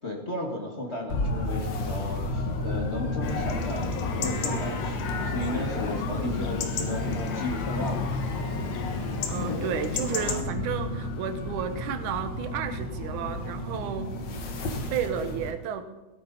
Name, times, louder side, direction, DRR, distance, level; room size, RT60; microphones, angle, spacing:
voice 1, 0.0-3.8 4.1-8.1, left 1 dB, 30° left, 0 dB, 1.2 m, -34 dB
sound 1, 1.1-15.5, left 2 dB, 55° left, 1.3 m, -32 dB
Chatter / Livestock farm animals working animals / Chirp tweet, 3.2-10.4, left 5 dB, 80° left, 3.1 m, -34 dB
Bowed string instrument, 7.7-12.1, left 2 dB, 15° right, 5.6 m, -50 dB
voice 2, 8.9-14.1 14.5-15.9, right 8 dB, 70° right, 8 dB, 2.4 m, -33 dB
18.0 x 13.0 x 4.1 m, 1.1 s
omnidirectional pair, 3.9 m